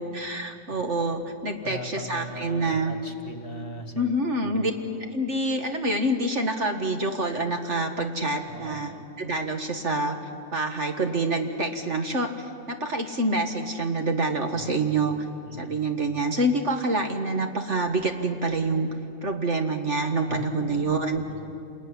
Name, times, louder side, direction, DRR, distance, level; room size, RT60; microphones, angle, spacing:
voice 1, 0.0-3.0 4.0-4.7 5.1-8.9 9.2-10.2 10.5-15.2 15.6-18.9 19.2-21.2, right 2 dB, 45° right, 5 dB, 1.8 m, -26 dB
voice 2, 1.6-5.0 8.5-9.1 14.5-14.8 15.4-15.8 20.3-21.0 21.3-21.5, left 2 dB, 35° left, 6 dB, 1.8 m, -39 dB
28.5 x 20.5 x 10.0 m, 2.5 s
omnidirectional pair, 1.9 m